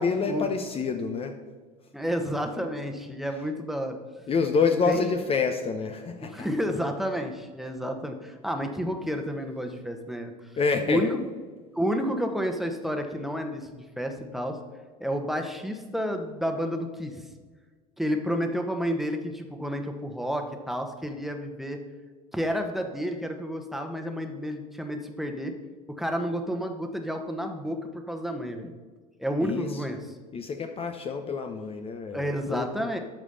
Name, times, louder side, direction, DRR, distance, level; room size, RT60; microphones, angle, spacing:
voice 1, 0.0-1.4 3.2-3.5 4.3-6.5 10.6-11.1 29.4-29.8 30.3-32.9, left 5 dB, 30° left, 6 dB, 0.9 m, -27 dB
voice 2, 1.9-4.0 4.9-5.0 6.3-10.3 10.9-11.1 11.7-14.6 15.0-17.2 18.0-21.8 22.3-25.5 25.9-28.7 29.2-30.0 32.1-33.0, equal, ahead, 4 dB, 1.3 m, -30 dB
13.0 x 5.0 x 5.6 m, 1.4 s
hypercardioid pair, 75°, 20 cm